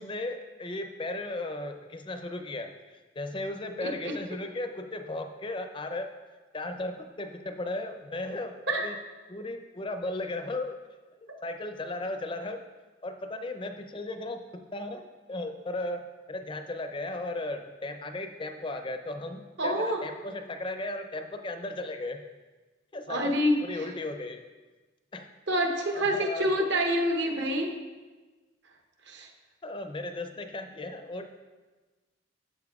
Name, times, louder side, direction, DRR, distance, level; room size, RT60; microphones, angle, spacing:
voice 1, 0.0-6.1 6.5-9.0 9.3-10.8 11.2-12.6 13.0-22.2 22.9-24.4 25.1-25.3 25.9-26.7 29.6-31.3, left 2 dB, 25° left, 7 dB, 0.5 m, -36 dB
voice 2, 19.6-20.0 23.1-23.6 25.5-27.7 29.1-29.3, equal, 60° right, 2 dB, 1.0 m, -27 dB
12.5 x 7.4 x 2.4 m, 1.3 s
head